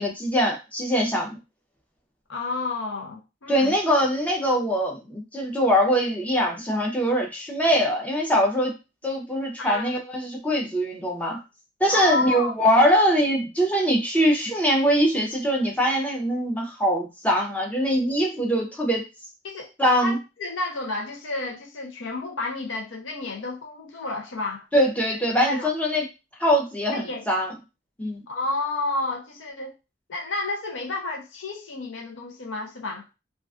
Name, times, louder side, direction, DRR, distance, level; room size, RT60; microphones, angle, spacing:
voice 1, 0.0-1.4 3.5-8.7 9.0-11.4 11.8-19.0 19.8-20.2 24.7-26.1 26.4-27.5 28.0-28.2, equal, 10° left, 0.5 m, -22 dB
voice 2, 2.3-3.8 9.6-9.9 11.9-12.5 19.4-19.7 20.0-24.7 25.5-25.7 26.9-27.2 28.3-29.7 30.1-33.0, left 3 dB, 80° left, 0.6 m, -31 dB
2.4 x 2.3 x 2.4 m
head